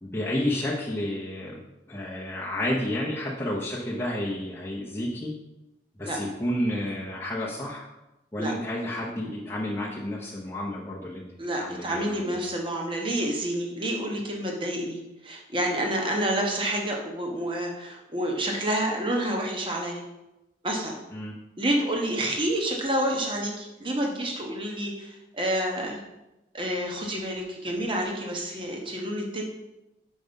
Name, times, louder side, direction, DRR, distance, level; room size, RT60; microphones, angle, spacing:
voice 1, 0.0-1.6 1.9-5.3 6.0-7.9 8.3-11.2 11.6-12.4 21.1-21.3, left 1 dB, 15° left, -7 dB, 0.8 m, -31 dB
voice 2, 11.4-20.0 20.6-21.0 21.6-26.0 26.5-29.4, right 1 dB, 30° right, 1 dB, 1.1 m, -29 dB
5.4 x 5.0 x 5.2 m, 0.96 s
head